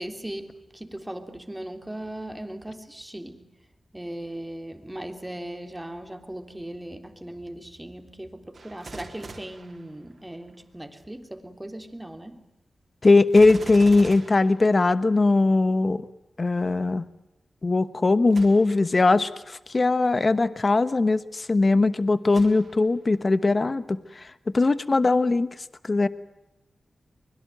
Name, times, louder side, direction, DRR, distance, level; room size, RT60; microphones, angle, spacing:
voice 1, 0.0-3.5 3.9-12.4, right 1 dB, 10° right, 6 dB, 3.4 m, -38 dB
Gunshot gunfire, 8.5-10.5 13.3-15.4 18.3-18.9 19.6-19.7 22.3-23.1 23.6-23.7, right 3 dB, 55° right, 3.9 m, -43 dB
voice 2, 13.0-16.1 16.4-17.1 17.6-24.3 24.5-26.1, left 3 dB, 40° left, 14 dB, 1.1 m, -20 dB
24.5 x 22.5 x 9.3 m, 0.91 s
cardioid pair, 70°, 0 cm